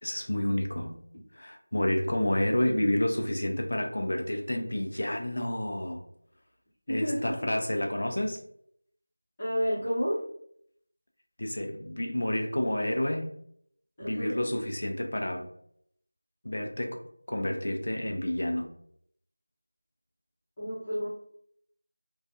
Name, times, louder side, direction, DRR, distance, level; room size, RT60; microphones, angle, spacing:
voice 1, 0.0-1.0 1.3-6.0 6.9-8.4 11.4-13.3 14.0-15.5 16.4-17.0 17.3-18.7, left 1 dB, 45° left, 3 dB, 0.4 m, -29 dB
voice 2, 6.9-7.4 9.4-10.2 14.0-14.4 20.6-21.1, equal, 15° left, -12 dB, 0.9 m, -30 dB
2.4 x 2.3 x 2.6 m, 0.69 s
figure-of-eight pair, 180°, 0 cm